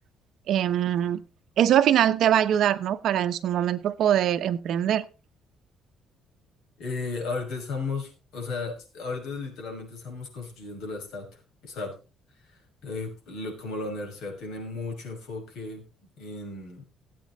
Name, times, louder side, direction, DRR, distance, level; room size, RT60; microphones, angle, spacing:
voice 1, 0.5-1.2 1.6-5.1, right 10 dB, 50° right, 12 dB, 0.9 m, -22 dB
voice 2, 6.8-12.0 12.8-15.8 16.2-16.8, left 3 dB, 70° left, 1 dB, 5.9 m, -35 dB
17.0 x 8.6 x 4.0 m, 0.32 s
cardioid pair, 175°, 0 cm